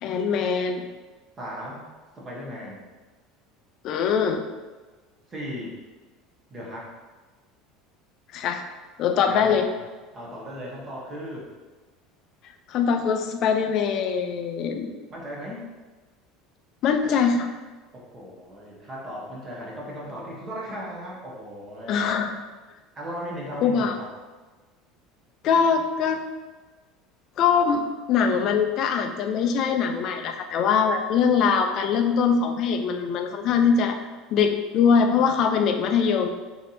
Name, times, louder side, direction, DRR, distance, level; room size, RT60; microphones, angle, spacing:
voice 1, 0.0-0.9 3.8-4.4 8.3-8.6 9.0-9.7 12.7-14.9 16.8-17.5 21.9-22.3 23.6-23.9 25.4-26.2 27.4-34.0 34.3-36.3, left 6 dB, 45° left, 6 dB, 0.4 m, -22 dB
voice 2, 1.4-1.9 2.2-2.9 5.3-5.8 6.5-6.9 9.2-9.8 10.1-11.5 15.1-15.6 17.9-22.2 23.0-24.1, equal, 20° right, -3 dB, 0.9 m, -37 dB
3.3 x 2.7 x 4.0 m, 1.3 s
cardioid pair, 160°, 0 cm